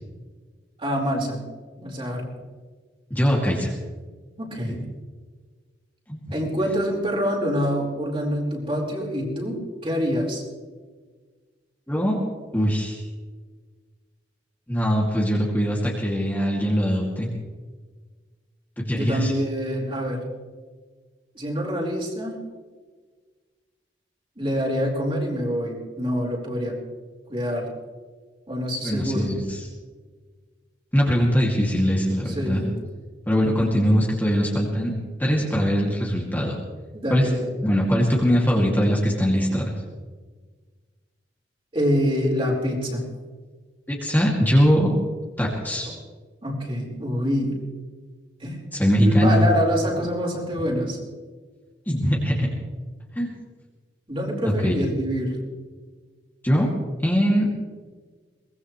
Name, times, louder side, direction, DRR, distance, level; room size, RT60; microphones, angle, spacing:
voice 1, 0.8-1.4 1.8-2.3 4.4-4.8 6.3-10.4 18.9-20.2 21.3-22.4 24.4-26.8 27.3-27.7 28.5-29.3 32.4-32.8 36.9-37.5 41.7-43.1 46.4-47.6 48.4-48.7 49.0-51.0 54.1-55.4, equal, 30° right, -2 dB, 4.6 m, -26 dB
voice 2, 3.1-3.7 4.7-4.8 6.1-6.2 11.9-12.2 12.5-13.0 14.7-17.3 18.8-19.3 28.8-29.7 30.9-32.6 33.3-36.6 37.1-37.3 37.6-39.7 43.9-44.9 45.4-45.9 48.7-49.4 51.9-52.5 53.1-53.3 54.4-54.7 56.4-56.7 57.0-57.5, equal, 10° left, -3 dB, 2.4 m, -21 dB
23.0 x 19.5 x 3.2 m, 1.4 s
head